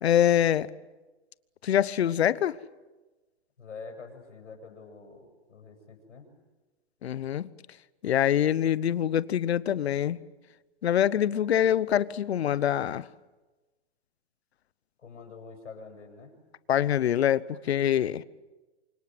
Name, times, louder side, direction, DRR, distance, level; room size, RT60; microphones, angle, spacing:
voice 1, 0.0-0.7 1.6-2.6 7.0-7.5 8.0-10.2 10.8-13.0 16.7-18.2, left 10 dB, 60° left, 1.0 m, -25 dB
voice 2, 3.6-6.3 15.0-16.3, left 4 dB, 85° left, 7.7 m, -46 dB
29.0 x 25.0 x 7.8 m
hypercardioid pair, 165°, 35 cm